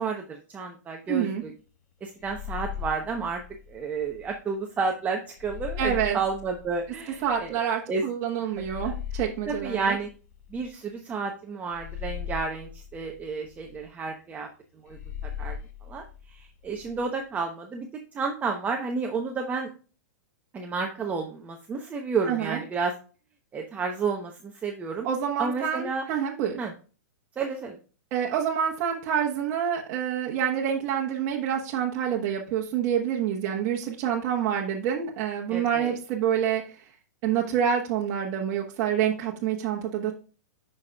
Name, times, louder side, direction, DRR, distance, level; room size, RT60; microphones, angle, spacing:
voice 1, 0.0-1.5 2.0-3.4 3.7-7.6 7.9-8.0 8.8-8.9 9.5-10.1 10.5-14.5 14.8-15.0 15.4-15.6 15.9-17.9 18.1-19.7 20.5-22.9 23.5-25.1 25.4-26.0 26.6-26.7 27.4-27.8 35.5-36.0, right 4 dB, 15° right, 2 dB, 0.8 m, -31 dB
voice 2, 1.1-1.4 5.8-6.2 7.2-9.9 22.3-22.6 25.0-26.6 28.1-36.6 37.2-40.1, right 9 dB, 40° right, -1 dB, 1.2 m, -27 dB
sound 1, 2.2-4.4 5.4-7.5 8.5-10.9 11.7-13.9 14.9-17.0, left 8 dB, 65° left, 1.4 m, -39 dB
9.6 x 5.5 x 2.3 m, 0.36 s
hypercardioid pair, 135°, 9 cm